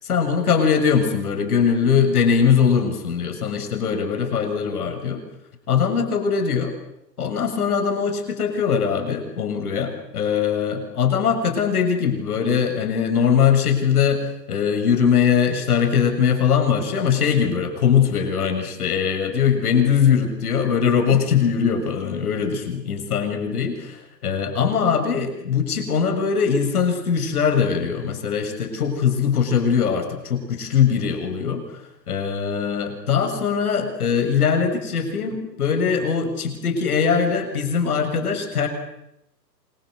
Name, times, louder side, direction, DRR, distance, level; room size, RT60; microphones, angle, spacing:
voice 1, 0.0-5.2 5.7-6.7 7.2-38.7, left 7 dB, 60° left, 6 dB, 7.1 m, -21 dB
28.0 x 23.5 x 8.1 m, 0.81 s
hypercardioid pair, 140°, 49 cm